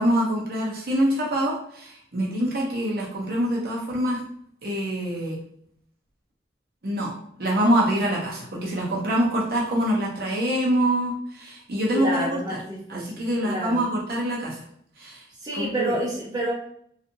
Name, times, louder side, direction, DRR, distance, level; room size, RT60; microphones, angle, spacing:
voice 1, 0.0-4.2 4.6-5.4 6.8-7.1 7.4-12.6 12.9-14.5 15.0-15.2 15.6-15.9, right 1 dB, 60° right, -4 dB, 0.7 m, -25 dB
voice 2, 11.9-13.8 15.4-16.5, right 1 dB, 20° right, -5 dB, 0.7 m, -29 dB
2.7 x 2.4 x 2.6 m, 0.67 s
head